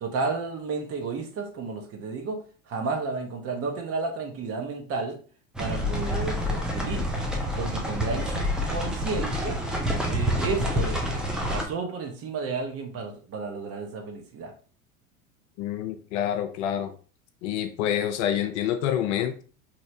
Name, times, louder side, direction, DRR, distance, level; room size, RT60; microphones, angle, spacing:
voice 1, 0.0-2.4 2.7-5.2 5.6-7.0 7.6-9.6 10.1-11.2 11.5-14.5, right 4 dB, 35° right, 3 dB, 0.8 m, -32 dB
sound 1, 5.5-11.6, equal, ahead, 0.3 m, -28 dB
voice 2, 15.6-16.9 17.4-19.4, left 10 dB, 55° left, 8 dB, 0.5 m, -27 dB
3.1 x 2.7 x 2.6 m, 0.40 s
hypercardioid pair, 85°, 43 cm